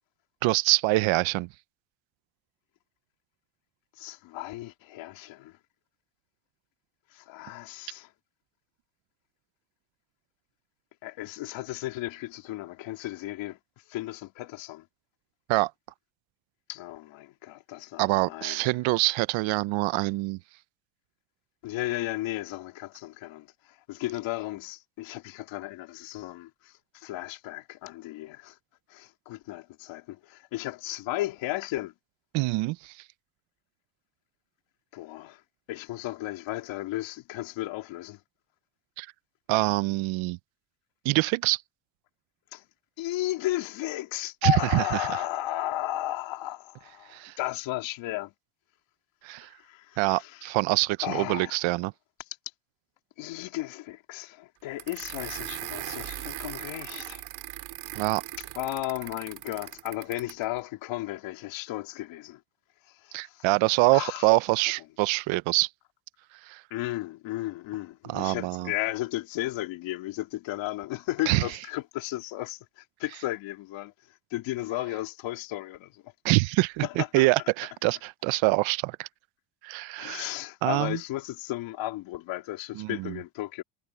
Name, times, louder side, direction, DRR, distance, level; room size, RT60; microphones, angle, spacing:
voice 1, 0.4-1.5 15.5-15.7 18.0-20.4 32.3-32.9 39.0-39.1 39.5-40.4 41.0-41.6 44.4-44.8 47.1-47.3 49.2-49.5 50.0-51.9 57.9-58.2 63.1-65.7 66.5-66.6 68.1-68.7 71.3-71.4 76.2-79.1 79.6-80.3 80.6-81.0 82.8-83.2, right 21 dB, 75° right, 0.7 m, -25 dB
voice 2, 4.0-5.6 7.1-8.1 11.0-13.6 13.9-14.8 16.7-18.6 21.6-28.6 28.9-31.9 34.9-35.4 35.7-38.2 42.5-42.6 43.0-48.3 49.5-50.5 51.0-51.6 53.2-57.2 58.5-62.4 62.9-63.5 63.9-64.4 66.7-76.1 76.8-77.3 80.0-83.6, left 16 dB, 70° left, 2.8 m, -34 dB
sound 1, 54.8-60.4, right 14 dB, 55° right, 2.9 m, -39 dB
cardioid pair, 170°, 47 cm